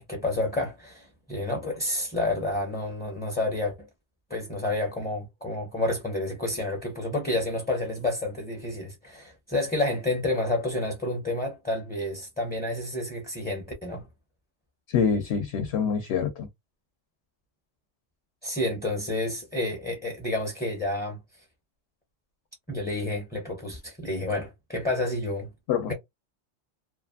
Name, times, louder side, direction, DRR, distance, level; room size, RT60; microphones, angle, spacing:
voice 1, 0.0-3.9 4.3-14.1 18.4-21.2 22.7-25.5 25.9-26.0, left 2 dB, 10° left, 0.5 m, -29 dB
voice 2, 14.9-16.5 25.7-25.9, left 6 dB, 70° left, 0.8 m, -26 dB
2.5 x 2.4 x 2.3 m
omnidirectional pair, 1.2 m